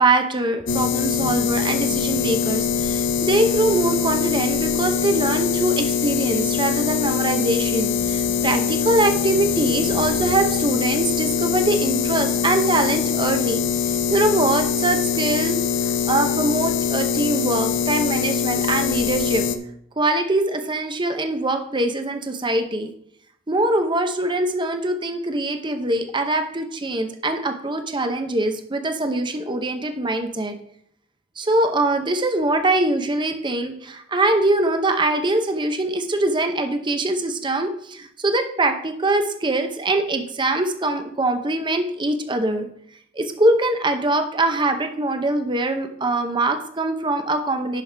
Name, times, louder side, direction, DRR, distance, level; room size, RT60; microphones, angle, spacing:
voice 1, 0.0-19.4 20.0-22.9 23.5-30.6 31.4-42.7 43.2-47.8, right 2 dB, 25° right, 7 dB, 0.7 m, -23 dB
sound 1, 0.7-19.6, left 7 dB, 65° left, 0.6 m, -23 dB
10.5 x 6.1 x 3.4 m, 0.68 s
head